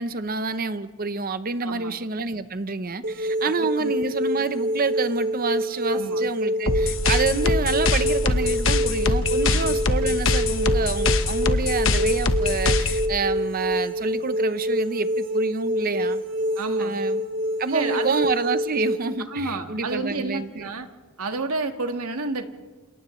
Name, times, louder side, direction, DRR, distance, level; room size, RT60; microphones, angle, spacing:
voice 1, 0.0-16.2 16.8-17.2 17.6-20.7, right 4 dB, 40° right, 11 dB, 0.8 m, -28 dB
voice 2, 1.6-2.0 3.4-3.9 5.9-6.2 9.4-9.7 16.6-17.0 17.6-18.2 19.3-20.9 21.2-22.5, right 3 dB, 90° right, 6 dB, 1.6 m, -30 dB
sound 1, 3.0-19.0, right 1 dB, 60° right, 2.6 m, -26 dB
sound 2, 6.7-13.0, left 3 dB, 65° left, 1.2 m, -23 dB
28.5 x 28.5 x 3.2 m, 1.4 s
head